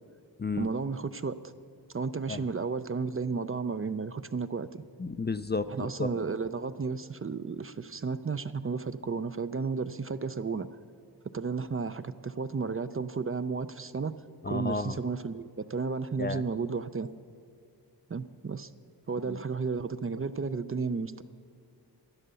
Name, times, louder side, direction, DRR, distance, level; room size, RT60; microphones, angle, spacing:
voice 1, 0.6-1.5 1.9-4.7 5.7-10.7 11.3-14.1 14.5-17.1 18.1-18.7 19.1-21.2, right 4 dB, 35° right, 12 dB, 0.5 m, -33 dB
voice 2, 5.0-6.1 14.4-15.0 16.2-16.4 19.3-19.4, left 4 dB, 25° left, 11 dB, 0.4 m, -32 dB
11.5 x 10.5 x 6.8 m, 2.3 s
wide cardioid pair, 50°, 40 cm